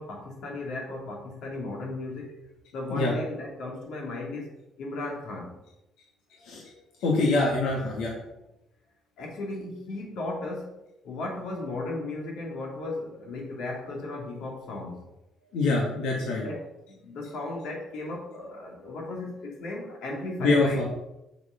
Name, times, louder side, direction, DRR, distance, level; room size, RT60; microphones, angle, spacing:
voice 1, 0.0-2.4 2.7-4.5 4.8-5.5 9.2-10.7 11.0-15.1 16.4-20.9, left 2 dB, 70° left, -1 dB, 2.8 m, -35 dB
voice 2, 7.0-8.2 15.5-16.4 20.4-20.9, left 3 dB, 90° left, -3 dB, 2.1 m, -25 dB
7.0 x 6.4 x 5.9 m, 0.89 s
cardioid pair, 170°, 0 cm